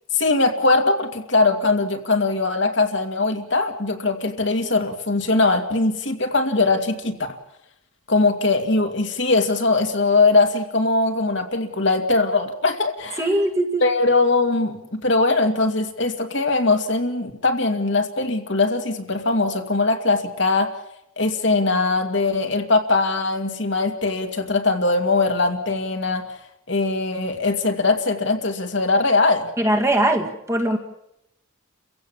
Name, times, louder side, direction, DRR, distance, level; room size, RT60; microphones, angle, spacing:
voice 1, 0.1-7.1 8.1-13.2 13.8-20.7 21.2-26.2 26.7-29.5, left 3 dB, 55° left, 5 dB, 2.1 m, -21 dB
voice 2, 13.2-13.8 29.6-30.8, right 1 dB, 15° right, 3 dB, 1.8 m, -21 dB
29.5 x 16.0 x 7.1 m, 0.82 s
head